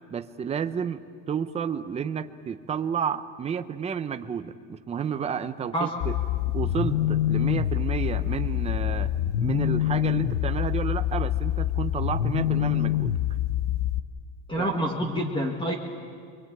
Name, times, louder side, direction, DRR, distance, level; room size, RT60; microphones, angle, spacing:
voice 1, 0.1-6.2 6.5-9.1 9.4-13.2 14.6-14.8, right 7 dB, 15° right, 9 dB, 0.6 m, -31 dB
sound 1, 6.0-14.0, left 12 dB, 65° left, 0.9 m, -26 dB
voice 2, 14.5-15.7, right 1 dB, 10° left, 2 dB, 1.7 m, -27 dB
27.0 x 23.5 x 8.8 m, 2.1 s
cardioid pair, 170°, 41 cm